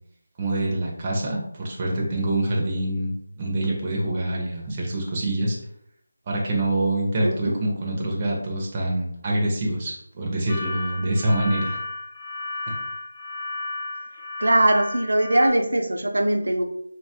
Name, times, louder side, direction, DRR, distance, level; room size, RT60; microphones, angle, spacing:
voice 1, 0.4-5.6 6.3-11.8, right 1 dB, 20° right, -2 dB, 0.4 m, -25 dB
voice 2, 7.2-7.6 14.4-16.6, right 1 dB, 85° right, 4 dB, 0.4 m, -21 dB
sound 1, 10.5-15.5, left 2 dB, 35° left, 0.5 m, -33 dB
2.9 x 2.1 x 2.7 m, 0.73 s
figure-of-eight pair, 175°, 0 cm